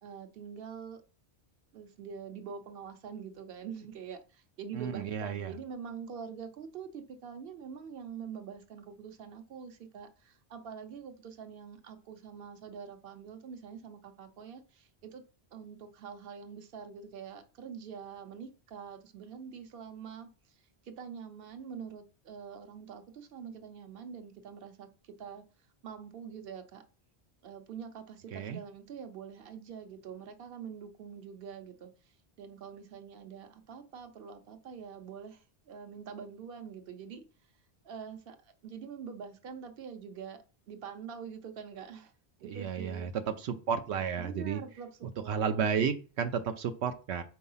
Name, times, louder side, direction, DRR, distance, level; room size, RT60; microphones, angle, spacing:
voice 1, 0.0-1.0 1.7-15.2 15.5-25.4 25.8-26.9 27.4-37.2 37.8-42.1 42.4-43.1 44.2-44.9 45.2-45.6, right 7 dB, 60° right, 1.0 m, -45 dB
voice 2, 4.7-5.6 28.3-28.6 42.4-44.6 45.3-47.2, right 7 dB, 85° right, 0.9 m, -32 dB
4.7 x 4.6 x 5.5 m
omnidirectional pair, 1.1 m